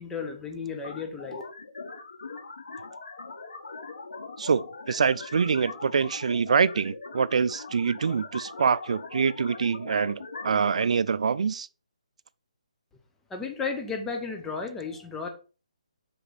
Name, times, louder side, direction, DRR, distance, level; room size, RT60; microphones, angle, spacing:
voice 1, 0.0-1.4 13.3-15.3, left 5 dB, 5° left, 0.8 m, -33 dB
sound 1, 0.8-10.8, left 4 dB, 85° left, 1.4 m, -41 dB
voice 2, 4.4-11.7, right 6 dB, 65° right, 0.4 m, -25 dB
5.9 x 5.1 x 4.1 m
hypercardioid pair, 165°, 4 cm